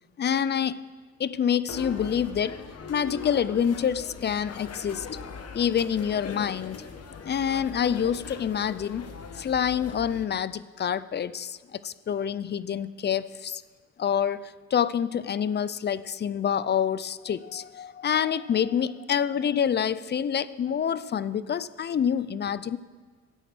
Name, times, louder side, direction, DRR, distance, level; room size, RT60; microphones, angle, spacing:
voice 1, 0.2-0.8 1.2-2.6 2.9-5.1 5.5-6.8 7.2-9.1 9.3-13.6 14.0-22.8, left 8 dB, 35° left, 17 dB, 0.5 m, -27 dB
sound 1, 1.7-10.3, left 5 dB, 55° left, 1.3 m, -41 dB
13.5 x 8.2 x 6.1 m, 1.5 s
cardioid pair, 90°, 30 cm